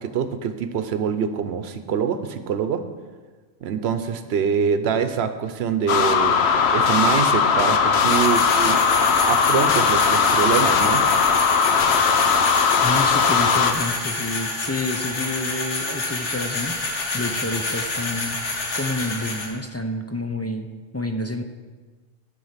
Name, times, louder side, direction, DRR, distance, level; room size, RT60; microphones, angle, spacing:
voice 1, 0.0-2.8 3.6-6.4 6.7-8.8 9.2-11.1, right 7 dB, 65° right, 10 dB, 1.0 m, -24 dB
sound 1, 5.9-13.7, left 6 dB, 70° left, 1.0 m, -19 dB
sound 2, 8.0-19.5, left 3 dB, 90° left, 1.7 m, -28 dB
voice 2, 12.8-16.8 17.1-20.7 20.9-21.4, left 2 dB, 20° left, 6 dB, 0.4 m, -29 dB
11.0 x 7.0 x 5.7 m, 1.4 s
omnidirectional pair, 1.2 m